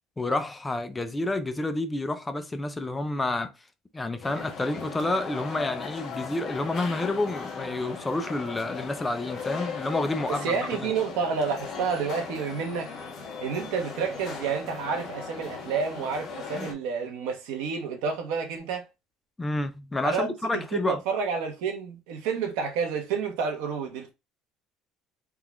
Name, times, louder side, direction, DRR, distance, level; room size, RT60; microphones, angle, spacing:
voice 1, 0.2-3.5 3.9-10.9 19.4-21.0, left 2 dB, 10° left, 0.3 m, -29 dB
sound 1, 4.2-16.7, left 5 dB, 45° left, 1.0 m, -38 dB
voice 2, 10.3-12.9 13.4-18.8 20.0-24.1, right 6 dB, 90° right, 0.9 m, -29 dB
3.7 x 2.3 x 2.9 m
cardioid pair, 155°, 0 cm